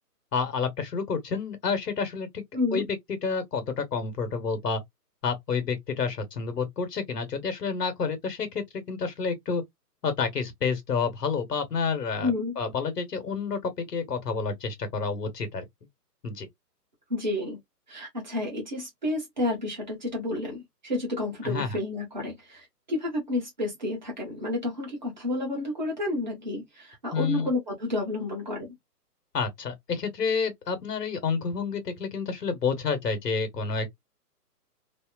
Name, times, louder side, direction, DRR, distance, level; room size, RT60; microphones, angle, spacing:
voice 1, 0.3-2.4 2.7-4.8 5.2-9.6 10.0-15.6 16.2-16.5 21.4-21.8 27.1-27.5 29.3-33.9, left 5 dB, 75° left, 1.2 m, -29 dB
voice 2, 2.5-2.8 12.2-12.6 17.1-17.6 17.9-28.7, left 2 dB, 30° right, 1.1 m, -30 dB
2.8 x 2.0 x 2.3 m
hypercardioid pair, 180°, 49 cm